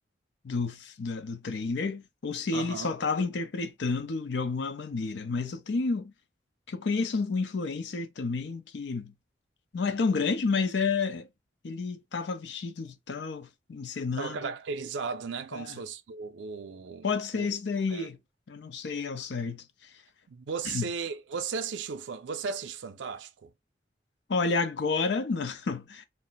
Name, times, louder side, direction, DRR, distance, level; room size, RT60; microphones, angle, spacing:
voice 1, 0.4-6.1 6.7-9.1 9.7-11.3 11.6-14.5 15.5-15.8 17.0-18.2 18.5-19.9 20.7-20.9 24.3-26.0, left 4 dB, 75° left, 0.5 m, -30 dB
voice 2, 2.5-2.9 14.2-17.1 17.3-17.5 17.9-18.1 20.3-23.5, right 5 dB, 80° right, 0.4 m, -36 dB
2.4 x 2.1 x 3.8 m
head